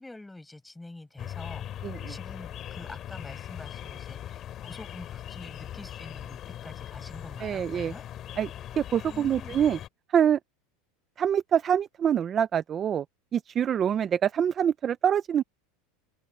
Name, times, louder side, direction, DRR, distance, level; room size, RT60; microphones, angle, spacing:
voice 1, 0.0-1.7 2.1-8.1 9.0-9.6, left 2 dB, 5° left, 5.2 m, -46 dB
sound 1, 1.2-9.9, left 11 dB, 25° left, 2.4 m, -40 dB
voice 2, 7.4-7.9 8.4-8.5 8.8-9.8 10.1-10.4 11.2-13.0 13.3-15.4, right 8 dB, 20° right, 0.4 m, -25 dB
open air
supercardioid pair, 175°, 0 cm